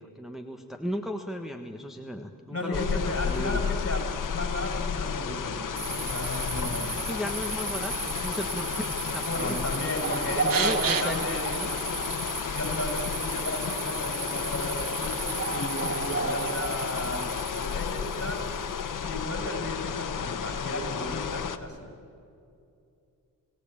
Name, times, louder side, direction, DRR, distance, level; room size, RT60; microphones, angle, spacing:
voice 1, 0.0-3.6 7.0-9.6 10.4-11.7, equal, ahead, 3 dB, 1.5 m, -36 dB
voice 2, 2.5-7.0 9.3-11.6 12.5-18.5 19.0-21.9, left 1 dB, 40° left, 4 dB, 5.7 m, -34 dB
sound 1, 2.7-21.6, left 7 dB, 60° left, 1.4 m, -32 dB
sound 2, 5.8-18.6, right 4 dB, 30° right, 1.3 m, -34 dB
sound 3, 7.3-15.5, right 7 dB, 65° right, 1.5 m, -39 dB
29.0 x 18.0 x 8.8 m, 2.5 s
cardioid pair, 95°, 36 cm